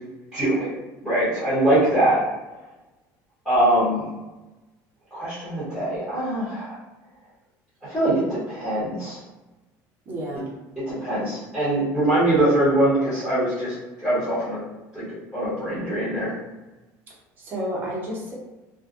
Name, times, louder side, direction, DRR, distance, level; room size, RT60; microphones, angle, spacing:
voice 1, 0.3-0.7 1.0-2.2 3.4-4.1 5.1-6.8 7.8-9.2 10.9-13.7 14.0-14.6 14.9-15.0 15.3-16.3, right 1 dB, 5° left, -13 dB, 0.9 m, -22 dB
voice 2, 10.1-10.5 17.1-18.3, equal, 30° right, -4 dB, 0.7 m, -31 dB
2.5 x 2.2 x 2.3 m, 1.1 s
cardioid pair, 175°, 7 cm